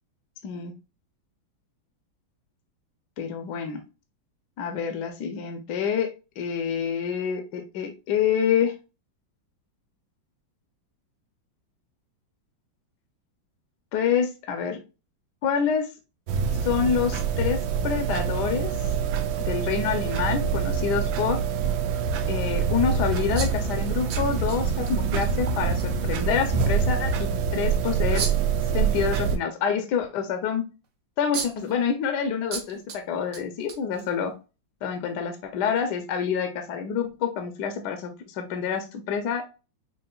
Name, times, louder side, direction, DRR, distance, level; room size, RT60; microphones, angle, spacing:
voice 1, 3.2-3.8 4.6-6.1 6.4-8.7 13.9-14.8 15.4-15.9 16.6-18.7 19.5-21.4 22.3-28.3 28.7-30.6 31.2-34.3 34.8-39.5, left 7 dB, 70° left, 6 dB, 1.1 m, -27 dB
sound 1, 16.3-29.4, right 6 dB, 90° right, 1.4 m, -25 dB
sound 2, 23.4-24.9 25.2-25.3 25.8-25.9 28.2-28.6 30.8-30.9 31.3-31.7 32.5-33.0 33.3-34.3, right 5 dB, 65° right, 0.7 m, -34 dB
5.7 x 2.8 x 2.3 m, 0.30 s
omnidirectional pair, 2.2 m